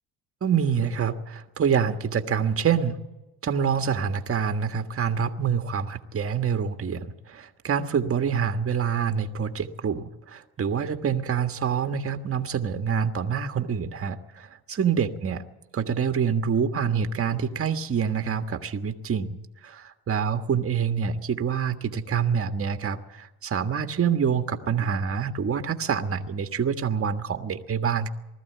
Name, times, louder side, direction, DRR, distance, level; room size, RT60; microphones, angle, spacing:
voice 1, 0.4-3.0 3.4-15.4 15.7-28.1, right 7 dB, 30° right, 8 dB, 1.5 m, -26 dB
20.5 x 14.0 x 9.4 m, 1.0 s
cardioid pair, 100°, 41 cm